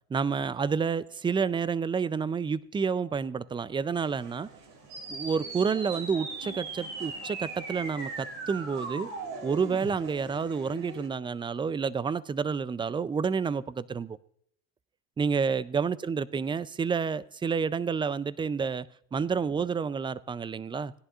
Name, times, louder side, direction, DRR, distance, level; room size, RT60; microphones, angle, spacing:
voice 1, 0.1-4.5 5.1-9.1 9.4-14.2 15.2-18.9 19.1-20.9, right 5 dB, 15° right, 18 dB, 0.4 m, -29 dB
sound 1, 4.0-11.1, right 2 dB, 65° right, 2.7 m, -47 dB
sound 2, 4.9-9.9, right 4 dB, 85° right, 2.9 m, -39 dB
17.0 x 11.0 x 2.4 m, 0.67 s
supercardioid pair, 95°, 35 cm